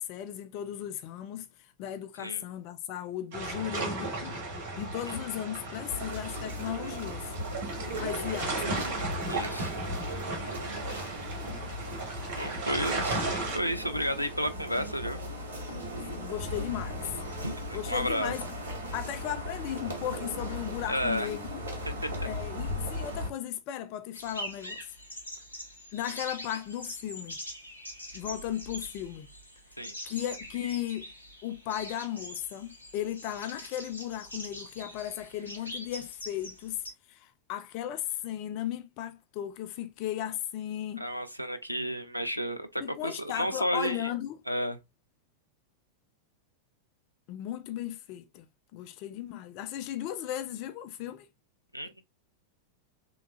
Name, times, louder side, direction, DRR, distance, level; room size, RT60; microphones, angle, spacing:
voice 1, 0.0-4.4 4.8-7.3 8.0-8.9 15.9-17.1 17.7-18.5 18.9-21.6 22.2-24.9 25.9-27.4 28.1-29.3 30.0-31.1 31.4-36.8 37.1-41.0 42.8-44.4 47.3-51.3, left 11 dB, 45° left, 0.3 m, -36 dB
sound 1, 3.3-13.6, right 2 dB, 50° right, 1.4 m, -35 dB
sound 2, 5.9-23.3, equal, 70° right, 0.9 m, -37 dB
voice 2, 9.3-9.7 12.4-13.3 13.5-15.2 17.4-17.6 17.9-18.3 20.9-21.3 21.9-22.3 29.8-29.9 41.0-44.1 44.5-44.8 51.7-52.0, equal, 90° right, 0.4 m, -32 dB
sound 3, 24.1-36.9, equal, 80° left, 0.8 m, -43 dB
3.4 x 2.9 x 2.3 m
figure-of-eight pair, 90°, 0 cm